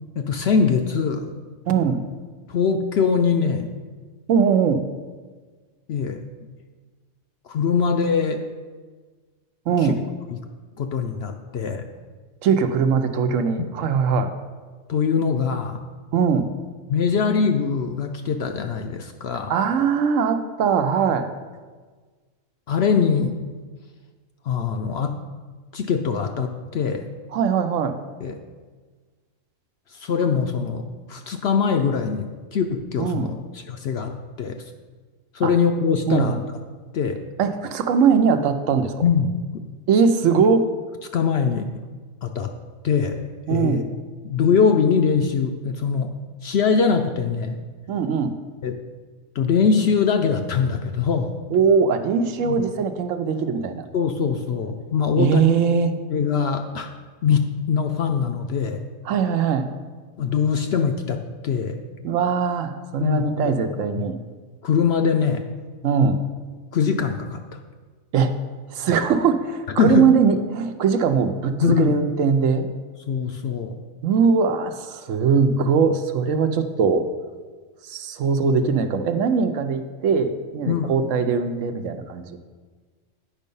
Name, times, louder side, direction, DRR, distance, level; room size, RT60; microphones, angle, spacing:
voice 1, 0.2-1.3 2.5-3.7 5.9-6.2 7.5-8.4 10.8-11.8 14.9-15.8 16.9-19.5 22.7-23.4 24.4-25.1 25.7-27.1 28.2-28.4 29.9-34.1 34.4-34.6 35.3-36.4 36.9-37.2 39.0-39.3 41.1-41.6 42.2-42.5 42.8-43.2 43.5-43.8 44.2-46.1 46.4-47.6 48.6-48.8 49.4-51.3 52.4-52.6 53.9-55.4 56.1-56.9 57.2-58.8 60.2-61.8 63.0-63.2 64.0-64.1 64.6-65.4 66.7-67.4 69.8-70.1 71.6-71.9 73.1-73.8 80.7-80.9, left 6 dB, 65° left, 6 dB, 0.7 m, -22 dB
voice 2, 1.7-2.1 4.3-4.9 9.7-10.0 12.4-14.3 16.1-16.5 19.5-21.3 27.3-28.0 33.0-33.3 35.4-35.5 36.1-36.4 37.4-39.0 39.9-40.7 43.5-43.9 47.9-48.4 51.5-53.9 55.2-56.0 59.0-59.7 62.0-64.2 65.8-66.3 68.1-68.4 68.7-72.7 74.0-77.1 77.8-82.4, right 6 dB, 70° right, 8 dB, 1.0 m, -21 dB
9.1 x 5.4 x 5.4 m, 1.4 s
omnidirectional pair, 1.4 m